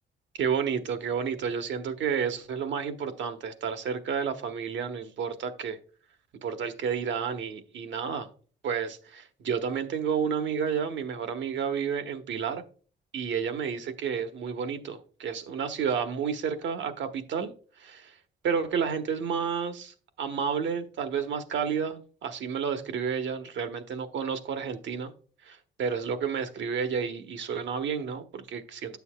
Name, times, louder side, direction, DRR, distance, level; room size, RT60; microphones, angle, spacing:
voice 1, 0.4-5.8 6.4-8.3 8.6-12.6 13.1-17.5 17.8-18.2 18.4-25.1 25.4-29.0, right 7 dB, 70° right, 1.0 m, -31 dB
9.7 x 6.9 x 2.2 m
cardioid pair, 90°, 20 cm